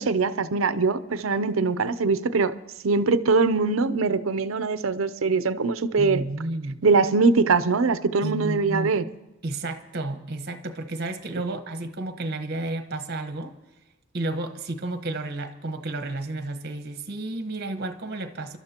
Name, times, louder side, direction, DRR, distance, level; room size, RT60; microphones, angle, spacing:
voice 1, 0.0-2.5 2.8-6.2 6.8-9.0 11.4-11.6, right 4 dB, 85° right, 14 dB, 0.6 m, -22 dB
voice 2, 6.0-6.8 8.2-8.9 9.4-13.5 14.1-18.6, right 2 dB, 50° right, 9 dB, 1.2 m, -32 dB
28.0 x 12.5 x 2.9 m, 1.0 s
head